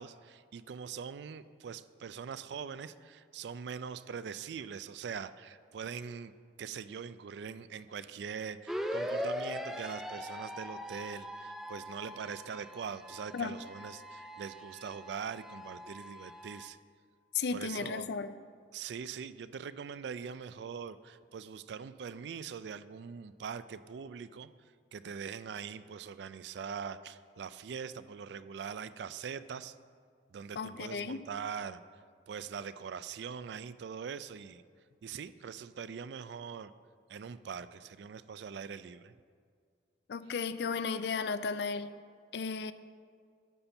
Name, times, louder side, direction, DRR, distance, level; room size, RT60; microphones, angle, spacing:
voice 1, 0.0-6.3 6.6-16.8 17.5-18.1 18.7-24.5 24.9-29.8 30.3-31.8 32.3-34.6 35.0-36.7 37.1-39.1, right 6 dB, 70° right, 0.3 m, -42 dB
sound 1, 8.7-16.7, equal, ahead, 0.4 m, -41 dB
voice 2, 17.3-18.4 30.6-31.2 40.1-41.9 42.3-42.7, left 5 dB, 65° left, 0.4 m, -34 dB
11.0 x 4.3 x 6.8 m
head